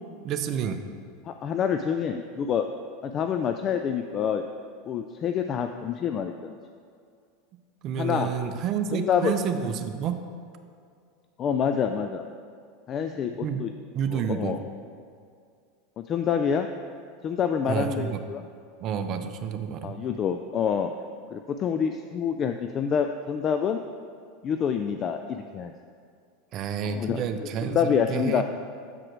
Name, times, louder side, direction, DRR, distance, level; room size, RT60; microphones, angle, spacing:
voice 1, 0.2-0.8 7.8-10.1 13.4-13.6 13.9-14.6 17.7-18.2 18.8-19.9 26.5-28.4, right 7 dB, 45° right, 8 dB, 0.6 m, -29 dB
voice 2, 1.3-2.7 3.0-4.4 4.9-6.6 8.0-8.3 8.9-9.3 11.4-12.2 12.9-13.7 14.1-14.6 16.0-16.7 17.2-18.4 19.8-20.9 21.3-23.8 24.4-25.7 26.9-28.4, left 7 dB, 35° left, 7 dB, 0.3 m, -27 dB
7.5 x 4.9 x 4.6 m, 2.3 s
supercardioid pair, 110°, 0 cm